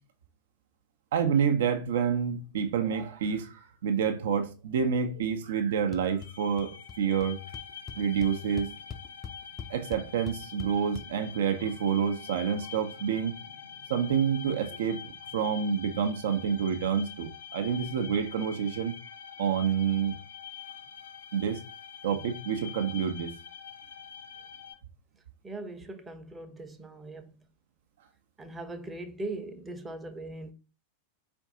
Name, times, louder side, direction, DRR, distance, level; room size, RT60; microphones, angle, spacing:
voice 1, 1.1-7.4 8.0-8.7 9.7-13.4 13.9-19.0 19.4-20.2 21.3-21.6 22.0-23.3, right 7 dB, 60° right, 0.5 m, -28 dB
sound 1, 5.9-6.3 6.6-7.0 7.2-7.3 7.5-11.0, left 6 dB, 20° left, 0.4 m, -41 dB
sound 2, 6.2-24.8, left 8 dB, 70° left, 0.6 m, -45 dB
voice 2, 25.4-27.4 28.4-30.5, right 2 dB, 15° right, 0.7 m, -40 dB
4.6 x 2.6 x 3.7 m
figure-of-eight pair, 90°, 0 cm